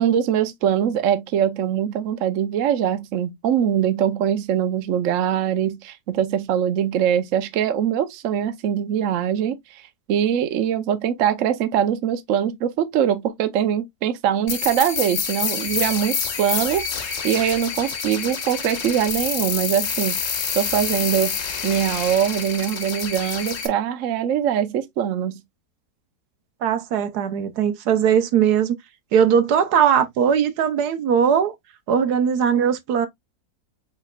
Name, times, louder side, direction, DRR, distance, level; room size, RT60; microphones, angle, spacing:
voice 1, 0.0-9.8 10.1-20.2 20.6-21.4 21.6-25.4, right 9 dB, 60° right, 0.9 m, -22 dB
sound 1, 14.5-23.7, left 6 dB, 50° left, 1.1 m, -27 dB
voice 2, 26.6-28.8 29.1-31.5 31.9-33.1, right 8 dB, 75° right, 1.3 m, -19 dB
5.1 x 4.2 x 2.3 m
omnidirectional pair, 1.7 m